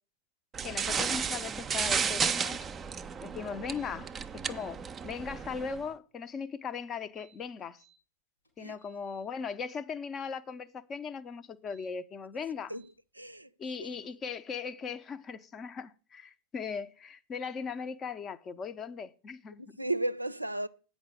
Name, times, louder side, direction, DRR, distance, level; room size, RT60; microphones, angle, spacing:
sound 1, 0.5-5.8, right 6 dB, 20° right, 0.5 m, -33 dB
voice 1, 0.6-2.7 3.2-7.8 8.6-12.7 13.6-19.6, left 6 dB, 25° left, 0.6 m, -38 dB
sound 2, 7.0-8.0 8.4-9.2 11.5-11.9 12.7-12.9, right 10 dB, 85° left, 3.6 m, -65 dB
voice 2, 12.7-13.5 13.8-14.0 19.6-20.7, right 2 dB, 85° right, 0.4 m, -35 dB
8.8 x 5.4 x 6.2 m
figure-of-eight pair, 90°, 0 cm